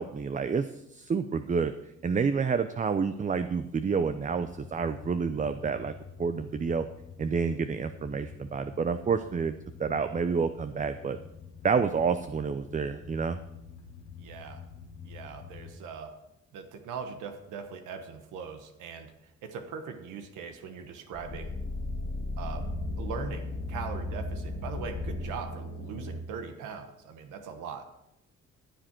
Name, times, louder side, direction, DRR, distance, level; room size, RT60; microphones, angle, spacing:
voice 1, 0.0-1.7 2.0-5.9 6.2-6.9 7.2-9.5 9.8-11.2 11.6-13.4, right 5 dB, 25° right, 10 dB, 0.5 m, -29 dB
sound 1, 4.3-15.8, left 6 dB, 75° left, 2.9 m, -48 dB
voice 2, 14.2-14.6 15.0-16.2 16.5-19.1 19.4-21.6 22.4-22.7 23.0-27.8, right 6 dB, 90° right, 6 dB, 1.2 m, -40 dB
sound 2, 21.1-26.2, left 2 dB, 35° left, 1.8 m, -35 dB
14.5 x 7.6 x 4.5 m, 0.86 s
cardioid pair, 90°, 30 cm